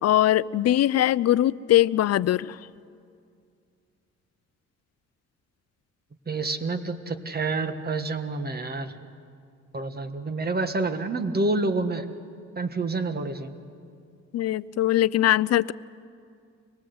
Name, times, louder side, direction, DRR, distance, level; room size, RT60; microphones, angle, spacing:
voice 1, 0.0-2.5 14.3-15.7, left 13 dB, 55° left, 0.5 m, -21 dB
voice 2, 6.3-8.9 9.7-12.0 12.6-13.5, right 3 dB, 30° right, 1.5 m, -28 dB
25.0 x 20.0 x 7.9 m
cardioid pair, 90°, 30 cm